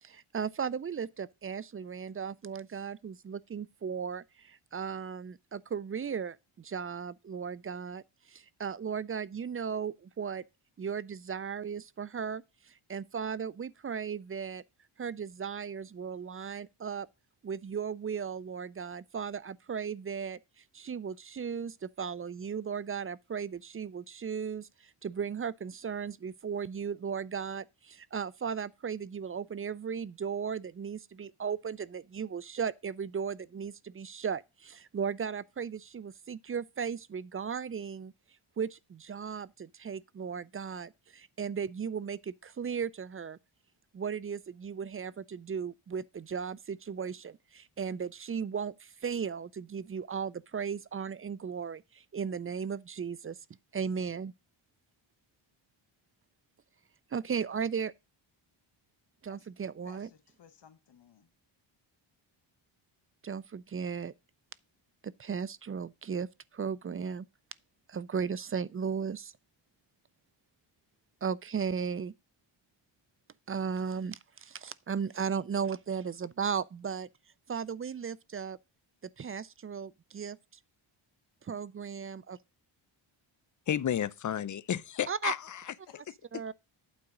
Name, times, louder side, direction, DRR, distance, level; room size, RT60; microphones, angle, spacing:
voice 1, 0.0-8.0 8.3-10.4 10.8-14.6 15.0-17.1 17.4-20.4 20.7-38.1 38.6-43.4 43.9-53.4 53.7-54.3 57.1-57.9 59.2-60.1 63.2-64.1 65.0-66.3 66.5-67.3 67.9-69.3 71.2-72.1 73.5-77.1 77.5-78.6 79.2-80.4 81.4-82.4 85.1-85.3 86.3-86.5, right 6 dB, 30° right, 0.4 m, -36 dB
voice 2, 59.8-61.3 85.9-86.5, left 8 dB, 55° left, 1.3 m, -58 dB
voice 3, 83.7-85.7, left 9 dB, 35° left, 0.6 m, -32 dB
8.8 x 3.7 x 6.1 m
cardioid pair, 80°, 50 cm